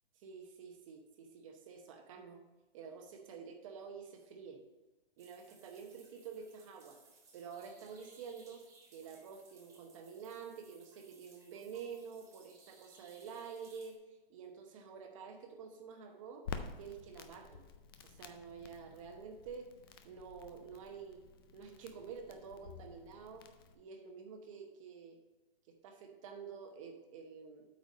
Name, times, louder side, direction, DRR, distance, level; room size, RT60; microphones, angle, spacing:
voice 1, 0.2-2.4 2.7-4.6 5.2-7.0 7.3-8.6 8.9-14.0 14.3-16.5 16.8-17.7 18.0-19.7 20.0-21.2 21.5-23.5 23.7-25.2 25.7-27.7, right 6 dB, 35° right, 4 dB, 1.0 m, -49 dB
sound 1, 5.2-13.9, right 4 dB, 10° right, 0.9 m, -63 dB
Crackle, 16.4-23.7, left 6 dB, 25° left, 0.4 m, -50 dB
8.4 x 4.6 x 5.3 m, 1.1 s
hypercardioid pair, 155°, 29 cm